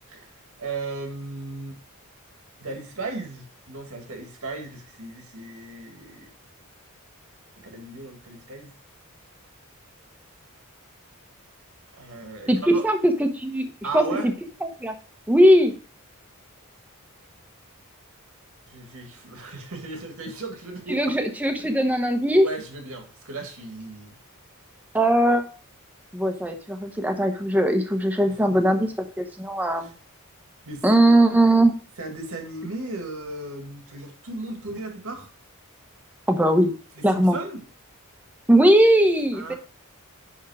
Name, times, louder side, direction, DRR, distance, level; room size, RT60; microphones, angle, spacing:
voice 1, 0.6-1.8 2.6-6.3 7.6-8.7 11.9-12.8 13.8-14.3 18.7-21.2 21.6-21.8 22.3-24.2 28.3-28.9 29.8-29.9 30.6-31.2 32.0-35.3 36.9-37.6 39.3-39.5, right 2 dB, 70° right, 2 dB, 2.1 m, -36 dB
voice 2, 12.5-13.7 13.9-14.3 14.6-14.9 15.3-15.7 20.9-22.4 24.9-25.4 26.1-28.9 29.2-29.9 30.8-31.7 36.3-36.7 37.0-37.4 38.5-39.5, right 1 dB, 5° right, 5 dB, 1.0 m, -19 dB
10.5 x 3.7 x 4.9 m, 0.40 s
head